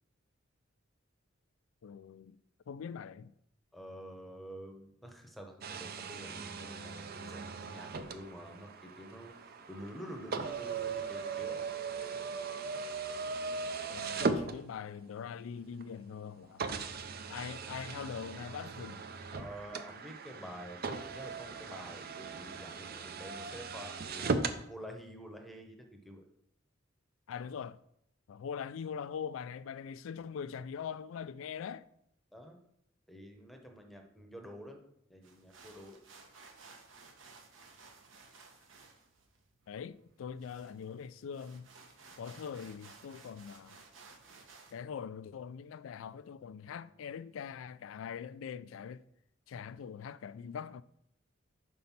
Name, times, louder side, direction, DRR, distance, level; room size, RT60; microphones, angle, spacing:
voice 1, 1.8-2.4 2.7-3.3 13.9-16.6 17.3-19.0 27.3-27.8 28.3-31.9 39.7-41.7 42.2-43.8 44.7-49.0 49.5-50.8, left 7 dB, 85° left, 0.3 m, -42 dB
voice 2, 3.7-11.6 19.3-26.2 32.3-32.6 33.1-36.0, equal, ahead, 0.8 m, -48 dB
sound 1, 5.6-15.1 15.8-15.9 16.6-24.6, right 4 dB, 50° right, 0.5 m, -38 dB
sound 2, 35.2-44.8, right 4 dB, 75° right, 1.1 m, -57 dB
5.5 x 5.2 x 5.8 m
head